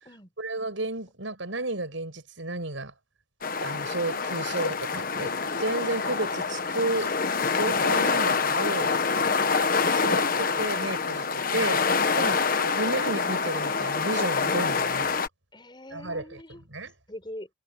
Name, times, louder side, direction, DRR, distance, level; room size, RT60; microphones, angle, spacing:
voice 1, 0.4-2.9 3.6-5.3 5.6-7.2 7.5-8.9 9.5-11.9 12.2-15.1 15.9-16.9, right 2 dB, 80° right, 5.8 m, -32 dB
sound 1, 3.4-15.3, left 5 dB, 45° left, 1.2 m, -26 dB
voice 2, 15.5-16.6 17.1-17.5, left 1 dB, 25° left, 6.7 m, -43 dB
head